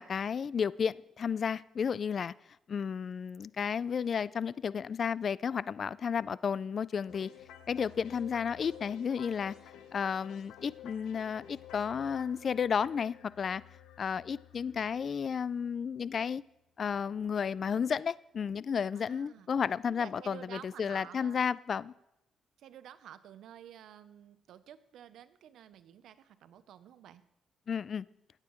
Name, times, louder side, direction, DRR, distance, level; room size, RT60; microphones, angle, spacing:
voice 1, 0.0-2.3 2.7-7.3 7.7-9.5 9.9-13.6 14.0-16.4 16.8-21.9 27.7-28.1, left 7 dB, 50° left, 20 dB, 0.3 m, -32 dB
sound 1, 7.1-16.3, left 10 dB, 90° left, 1.0 m, -53 dB
voice 2, 18.9-19.5 19.8-21.4 22.6-27.2, right 10 dB, 75° right, 13 dB, 0.6 m, -51 dB
16.5 x 8.9 x 3.1 m, 0.84 s
cardioid pair, 90°, 0 cm